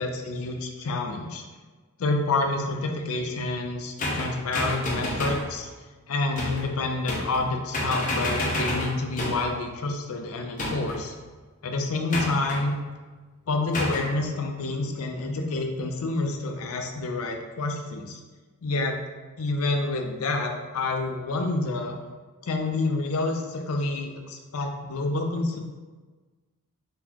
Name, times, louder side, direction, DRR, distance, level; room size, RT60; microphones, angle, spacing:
voice 1, 0.0-1.4 2.0-5.7 6.1-11.1 11.6-12.8 13.5-18.2 18.6-19.0 19.4-21.9 22.4-25.6, left 2 dB, 70° left, 4 dB, 0.5 m, -28 dB
sound 1, 4.0-5.5 6.4-6.7 7.1-7.5 7.7-9.5 10.6-11.1 12.1-12.6 13.7-14.1, left 1 dB, 35° left, 0.7 m, -29 dB
4.0 x 2.8 x 2.9 m, 1.4 s
head